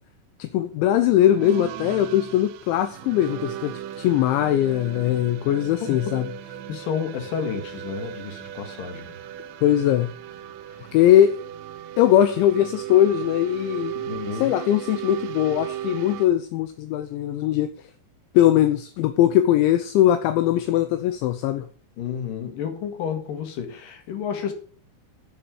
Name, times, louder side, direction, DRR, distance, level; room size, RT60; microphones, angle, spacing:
voice 1, 0.4-6.3 9.6-10.1 10.9-11.3 12.0-14.1 14.4-17.7 18.3-21.7, left 12 dB, 80° left, 2.9 m, -20 dB
sound 1, 1.2-16.3, right 11 dB, 80° right, 2.9 m, -36 dB
voice 2, 6.7-9.2 10.8-11.0 14.0-14.5 22.0-24.5, left 7 dB, 55° left, 2.9 m, -31 dB
8.9 x 8.5 x 7.1 m
omnidirectional pair, 5.6 m